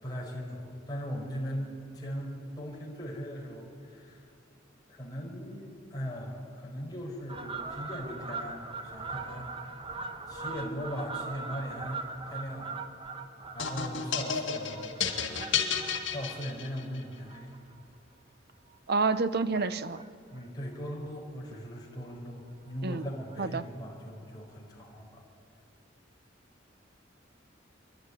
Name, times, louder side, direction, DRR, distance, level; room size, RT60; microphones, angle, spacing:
voice 1, 0.0-4.2 4.9-9.5 10.3-12.7 13.5-15.5 16.1-17.5 20.3-25.2, equal, 20° left, 5.4 m, -39 dB
Fowl, 7.3-18.1 18.5-18.8 19.5-20.1 20.4-20.5 20.7-20.8 21.1-21.2 21.5-21.7 22.7-22.8 23.3-23.4, right 4 dB, 30° right, 1.2 m, -41 dB
sound 1, 13.6-17.0, left 7 dB, 70° left, 2.5 m, -32 dB
voice 2, 18.9-20.0 22.8-23.0 23.4-23.6, right 4 dB, 55° right, 0.9 m, -28 dB
28.0 x 12.0 x 9.9 m
head